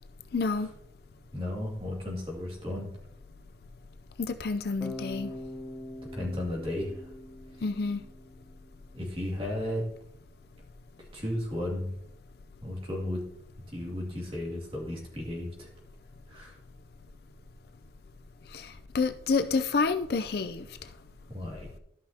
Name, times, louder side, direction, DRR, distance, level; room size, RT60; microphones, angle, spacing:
voice 1, 0.3-0.7 4.2-5.3 7.6-8.0 18.5-20.7, left 4 dB, 60° left, 9 dB, 0.5 m, -29 dB
voice 2, 1.3-2.9 6.1-7.1 8.9-9.9 11.1-11.9 12.6-13.2 13.7-15.7 16.3-16.6 21.3-21.8, left 1 dB, 30° right, -2 dB, 2.5 m, -34 dB
Bass guitar, 4.8-8.8, left 1 dB, 10° right, 0.8 m, -43 dB
13.5 x 5.7 x 2.8 m, 0.74 s
head